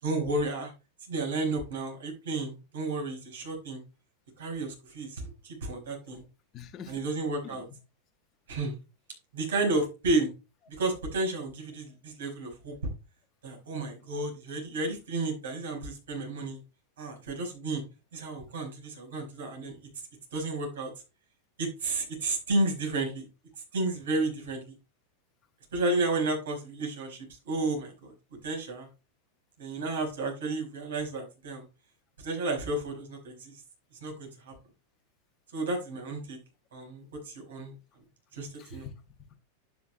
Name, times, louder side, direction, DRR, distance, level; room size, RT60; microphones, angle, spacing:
voice 1, 0.0-0.7 1.1-3.8 4.4-6.2 6.9-7.6 8.5-8.7 9.3-10.3 10.7-12.8 13.4-16.6 17.0-17.8 18.1-19.8 20.3-20.9 21.6-23.2 23.7-24.6 25.7-28.1 28.4-28.9 29.6-31.6 32.2-33.5 34.0-34.5 35.5-36.4 36.7-37.7 38.3-38.9, right 2 dB, 60° right, 2 dB, 4.8 m, -32 dB
voice 2, 6.5-7.0 7.4-7.6 38.6-39.4, left 7 dB, 30° left, 9 dB, 1.3 m, -46 dB
11.5 x 8.5 x 2.2 m, 0.29 s
figure-of-eight pair, 90°, 0 cm